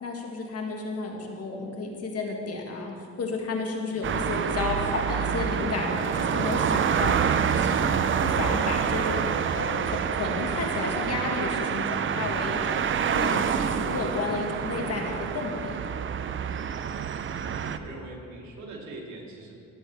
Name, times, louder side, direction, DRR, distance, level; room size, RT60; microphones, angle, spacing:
voice 1, 0.0-2.9 3.2-7.2 7.5-7.9 8.2-9.3 9.5-12.9 13.1-15.8, left 3 dB, 55° left, 1 dB, 1.8 m, -32 dB
sound 1, 4.0-17.8, right 7 dB, 40° right, 0.5 m, -27 dB
voice 2, 17.3-19.5, right 2 dB, 70° right, -2 dB, 2.6 m, -42 dB
18.0 x 8.0 x 3.4 m, 2.3 s
cardioid pair, 90°, 30 cm